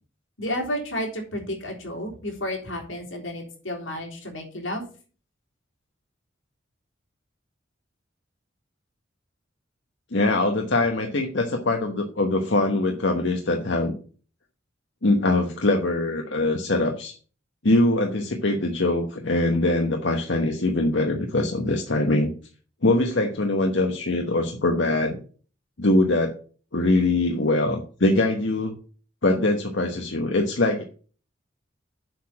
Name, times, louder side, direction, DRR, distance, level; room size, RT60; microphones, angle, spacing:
voice 1, 0.4-4.8, left 1 dB, 85° left, 1 dB, 3.4 m, -31 dB
voice 2, 10.1-14.0 15.0-17.1 17.6-22.3 22.8-25.2 25.8-26.3 26.7-28.7 29.2-30.8, left 2 dB, 65° left, 3 dB, 1.1 m, -22 dB
7.8 x 4.9 x 7.1 m, 0.40 s
head